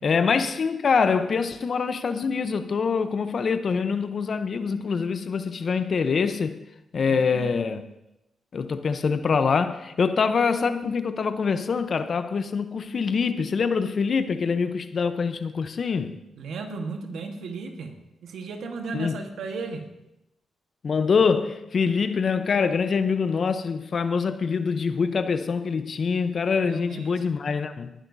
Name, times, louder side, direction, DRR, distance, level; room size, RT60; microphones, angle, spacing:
voice 1, 0.0-6.6 6.9-7.8 8.5-16.2 18.9-19.2 20.8-27.9, left 5 dB, 55° left, 0.7 m, -24 dB
voice 2, 7.0-7.5 16.3-17.9 18.2-19.9 26.6-27.2, right 4 dB, 80° right, 1.3 m, -35 dB
24.0 x 10.0 x 2.7 m
cardioid pair, 60°, 0 cm